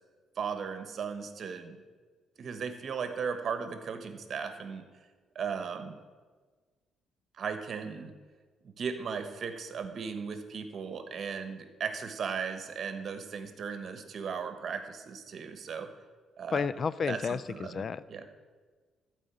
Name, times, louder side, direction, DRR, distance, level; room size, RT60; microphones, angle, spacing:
voice 1, 0.4-1.8 2.4-4.9 5.3-6.0 7.4-8.1 8.6-15.9 16.4-16.7 17.1-18.3, right 6 dB, 55° right, 8 dB, 1.2 m, -37 dB
voice 2, 16.5-18.0, left 6 dB, 50° left, 17 dB, 0.4 m, -31 dB
12.5 x 5.1 x 8.4 m, 1.5 s
cardioid pair, 90°, 0 cm